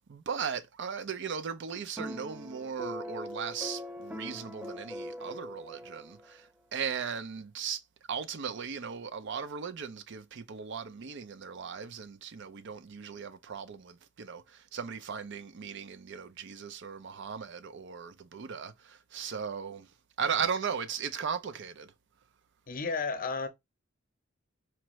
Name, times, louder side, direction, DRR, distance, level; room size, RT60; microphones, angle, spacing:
voice 1, 0.1-7.8 8.1-19.9 20.2-21.9, right 6 dB, 60° right, 0.5 m, -37 dB
sound 1, 2.0-6.4, left 1 dB, 5° right, 0.3 m, -42 dB
voice 2, 22.7-23.5, left 4 dB, 45° left, 0.7 m, -32 dB
4.4 x 2.5 x 3.0 m
head